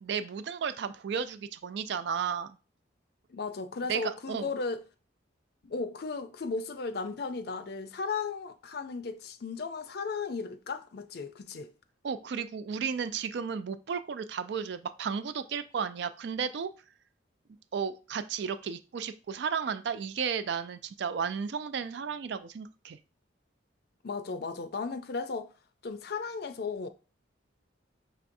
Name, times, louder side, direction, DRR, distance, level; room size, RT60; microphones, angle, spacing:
voice 1, 0.0-2.5 3.9-4.5 12.0-16.7 17.7-23.0, right 6 dB, 60° right, 0.3 m, -33 dB
voice 2, 3.3-4.8 5.6-11.7 24.0-25.5 25.8-26.9, left 4 dB, 55° left, 0.5 m, -35 dB
5.8 x 3.3 x 2.6 m
head